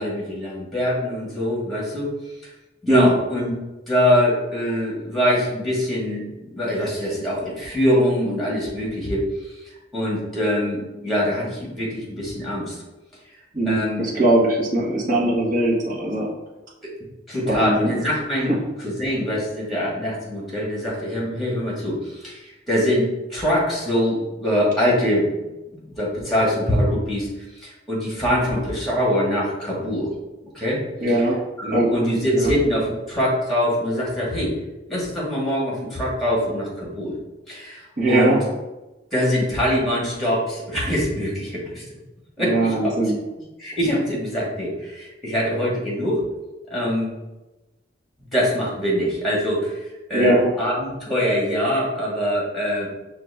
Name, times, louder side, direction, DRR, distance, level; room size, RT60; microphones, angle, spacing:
voice 1, 0.0-2.1 2.4-2.5 2.8-3.5 3.9-9.2 9.9-12.8 13.6-14.0 16.8-16.9 17.3-18.5 18.8-22.4 22.7-25.3 25.7-27.3 27.6-30.1 30.5-30.8 31.6-34.5 34.9-37.1 37.5-37.8 38.1-38.4 39.1-41.8 42.4-42.9 43.6-46.2 46.7-47.1 48.3-49.8 50.1-52.9, equal, ahead, -5 dB, 1.5 m, -23 dB
voice 2, 13.5-16.3 17.4-18.0 31.0-31.4 31.7-31.9 32.3-32.5 38.0-38.4 42.4-43.2 50.1-50.5, right 1 dB, 45° right, -5 dB, 1.3 m, -20 dB
5.7 x 2.5 x 3.4 m, 1.0 s
head